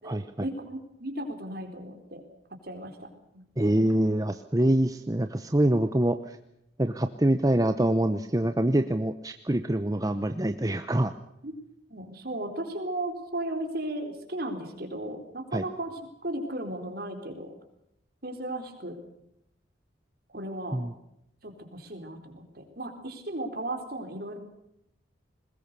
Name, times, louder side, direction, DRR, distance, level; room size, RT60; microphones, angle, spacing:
voice 1, 0.0-2.2 2.6-3.4 3.7-3.9 11.4-11.5 11.9-17.5 18.2-19.0 20.3-20.8 21.4-24.4, right 1 dB, 50° right, 5 dB, 4.0 m, -36 dB
voice 2, 3.6-6.4 6.8-11.1 15.5-15.6 20.7-20.9, right 1 dB, 20° right, 9 dB, 0.8 m, -25 dB
21.5 x 20.5 x 6.8 m, 0.79 s
head